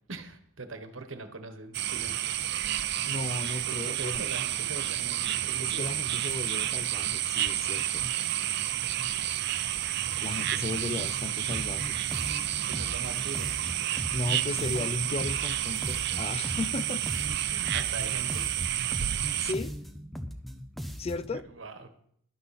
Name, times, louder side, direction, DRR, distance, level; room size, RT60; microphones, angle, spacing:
voice 1, 0.1-2.2 3.7-5.9 10.7-10.8 12.6-13.5 17.1-18.4 21.5-21.9, right 3 dB, 80° right, 1.2 m, -42 dB
sound 1, 1.7-19.5, right 12 dB, 55° right, 0.6 m, -30 dB
voice 2, 3.1-4.3 5.6-8.1 10.2-12.5 14.1-17.1 19.0-19.8 21.0-21.5, left 3 dB, 30° left, 0.4 m, -36 dB
sound 2, 11.5-21.4, equal, ahead, 0.7 m, -39 dB
11.5 x 11.0 x 4.2 m
head